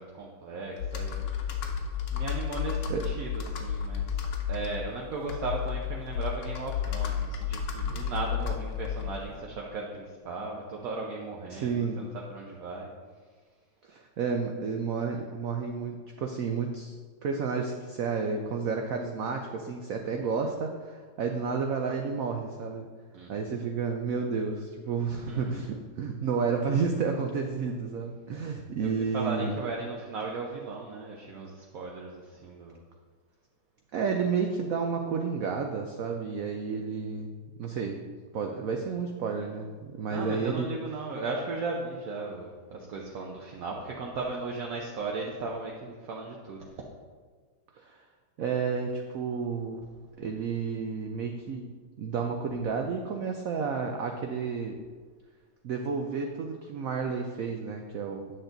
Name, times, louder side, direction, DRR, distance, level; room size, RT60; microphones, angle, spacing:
voice 1, 0.0-1.7 2.1-12.9 23.1-23.5 25.1-25.6 28.8-32.8 40.1-46.7, right 3 dB, 60° right, -1 dB, 1.0 m, -37 dB
Computer keyboard, 0.8-9.4, left 7 dB, 90° left, 1.7 m, -32 dB
voice 2, 11.5-12.0 13.9-17.0 17.2-22.9 23.3-29.6 33.9-38.0 38.3-40.7 47.8-48.0 48.4-49.9 50.2-51.7 52.0-54.8 55.6-58.3, right 5 dB, 85° right, 3 dB, 0.7 m, -31 dB
9.5 x 6.6 x 3.9 m, 1.5 s
omnidirectional pair, 2.2 m